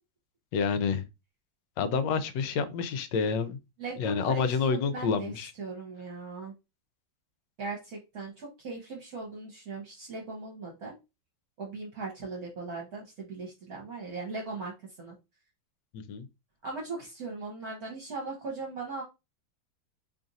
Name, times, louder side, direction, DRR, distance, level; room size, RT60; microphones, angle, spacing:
voice 1, 0.5-1.1 1.8-3.6 4.0-5.5 15.9-16.3, left 5 dB, 75° left, 1.2 m, -28 dB
voice 2, 3.8-5.3 5.6-6.5 7.6-11.0 11.6-14.7 15.0-15.2 16.6-19.0, right 3 dB, 60° right, 1.3 m, -39 dB
3.1 x 2.5 x 3.9 m
omnidirectional pair, 2.0 m